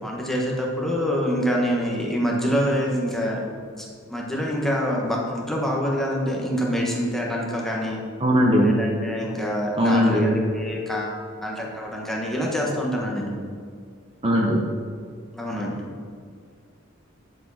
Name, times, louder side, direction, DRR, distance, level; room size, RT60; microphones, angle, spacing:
voice 1, 0.0-3.4 3.8-8.0 8.6-13.4 15.3-15.7, equal, ahead, -3 dB, 1.5 m, -26 dB
voice 2, 8.2-8.7 9.8-10.4 14.2-14.6, equal, 30° right, -1 dB, 1.0 m, -19 dB
10.5 x 7.4 x 4.3 m, 2.1 s
head